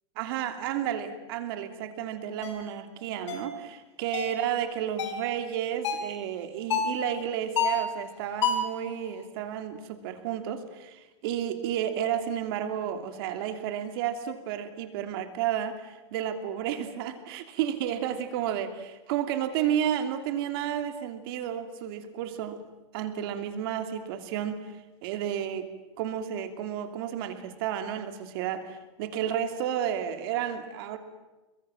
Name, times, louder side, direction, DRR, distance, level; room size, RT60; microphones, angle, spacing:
voice 1, 0.2-22.6 22.9-25.7 26.0-31.0, right 10 dB, 55° right, 8 dB, 2.8 m, -32 dB
sound 1, 2.4-2.6 3.3-3.5 4.1-4.4 5.0-5.2 5.8-6.1 6.7-7.0 7.6-7.9 8.4-8.8, left 5 dB, 80° left, 5.1 m, -28 dB
28.0 x 23.0 x 7.7 m, 1.1 s
supercardioid pair, 160°, 15 cm